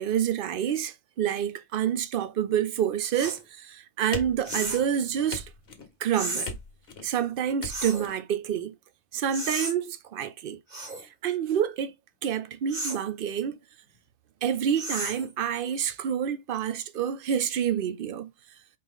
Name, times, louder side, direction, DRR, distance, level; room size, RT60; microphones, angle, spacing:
voice 1, 0.0-5.4 6.0-6.5 7.0-8.7 9.1-10.6 11.2-11.9 12.2-13.6 14.4-18.3, right 9 dB, 60° right, 0.6 m, -28 dB
sound 1, 3.1-3.4 4.4-4.9 6.1-6.5 7.7-8.1 9.3-9.7 10.7-11.1 12.7-13.0 14.7-15.3, right 2 dB, 35° right, 1.7 m, -33 dB
sound 2, 4.1-4.9 5.3-5.9 6.4-7.1 7.6-8.1, left 3 dB, 55° left, 1.1 m, -39 dB
4.6 x 3.1 x 3.5 m
omnidirectional pair, 1.4 m